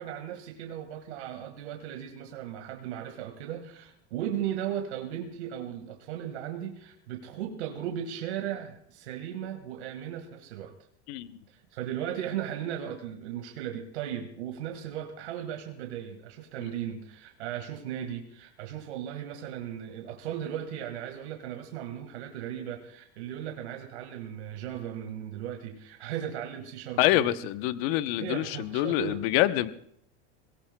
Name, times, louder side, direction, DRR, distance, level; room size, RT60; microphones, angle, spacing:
voice 1, 0.0-10.7 11.5-27.3 28.2-29.2, right 10 dB, 90° right, 3 dB, 1.8 m, -36 dB
voice 2, 11.1-11.4 16.6-16.7 27.0-29.7, left 14 dB, 65° left, 12 dB, 0.9 m, -26 dB
22.5 x 18.0 x 2.2 m, 0.68 s
supercardioid pair, 125°, 33 cm